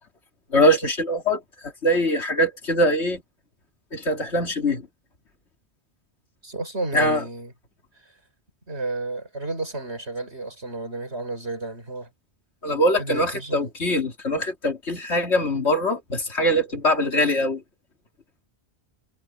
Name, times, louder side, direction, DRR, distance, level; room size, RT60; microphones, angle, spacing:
voice 1, 0.5-3.2 3.9-4.9 6.9-7.2 12.6-17.6, equal, 80° left, 3.1 m, -22 dB
voice 2, 6.4-7.5 8.7-12.1 13.0-13.6, right 2 dB, 75° right, 5.9 m, -32 dB
omnidirectional pair, 1.1 m